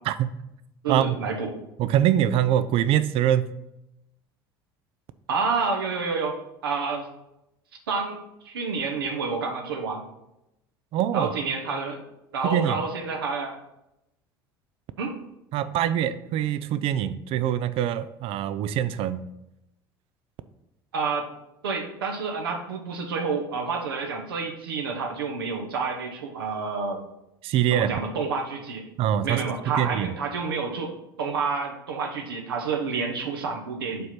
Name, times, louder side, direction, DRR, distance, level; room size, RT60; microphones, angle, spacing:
voice 1, 0.8-1.5 5.3-7.1 7.9-8.2 8.4-10.0 11.1-12.0 12.3-13.5 15.0-15.2 20.9-21.3 21.6-27.0 27.7-28.8 29.2-30.9 31.2-34.1, right 4 dB, 80° right, 2 dB, 0.9 m, -29 dB
voice 2, 1.8-3.5 10.9-11.3 12.4-12.8 15.5-19.3 27.4-27.9 29.0-30.1, right 11 dB, 50° right, 14 dB, 0.5 m, -24 dB
5.3 x 4.4 x 5.7 m, 0.87 s
hypercardioid pair, 65°, 12 cm